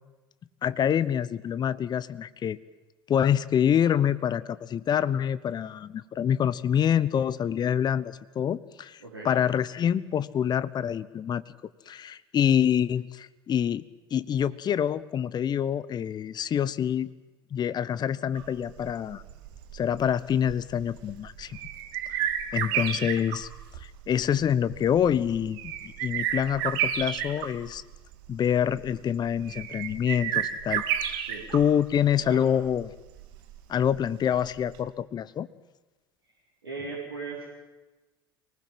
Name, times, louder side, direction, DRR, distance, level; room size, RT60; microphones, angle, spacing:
voice 1, 0.6-2.6 3.1-11.4 11.9-13.8 14.1-17.1 17.5-19.2 19.7-21.6 22.1-23.5 23.8-27.8 28.3-30.8 31.1-31.2 31.5-32.9 33.7-35.5, left 9 dB, 35° left, 17 dB, 1.0 m, -26 dB
sound 1, 18.3-34.8, right 10 dB, 60° right, 2.3 m, -33 dB
voice 2, 36.6-37.5, right 4 dB, 80° right, -4 dB, 4.8 m, -38 dB
25.0 x 19.5 x 7.7 m, 1.1 s
figure-of-eight pair, 70°, 13 cm